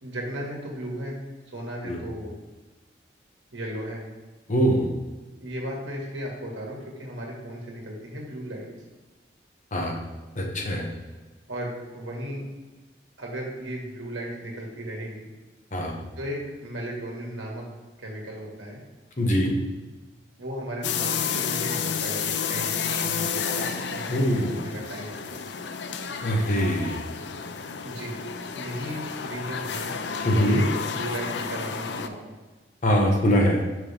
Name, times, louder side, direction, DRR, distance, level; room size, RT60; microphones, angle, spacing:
voice 1, 0.0-1.2 1.5-2.3 3.5-4.0 5.4-8.7 11.5-12.4 13.2-15.3 16.2-17.6 18.0-18.8 20.4-25.5 27.8-28.2 28.5-30.0 30.4-32.4, right 1 dB, 90° right, -2 dB, 1.8 m, -35 dB
voice 2, 4.5-4.9 9.7-9.9 10.4-10.8 15.7-16.0 19.2-19.5 24.1-24.6 26.2-27.0 30.2-30.6 32.8-33.6, equal, 40° left, 0 dB, 1.1 m, -22 dB
sound 1, 20.8-32.1, left 6 dB, 65° left, 0.4 m, -31 dB
6.0 x 5.6 x 3.5 m, 1.2 s
head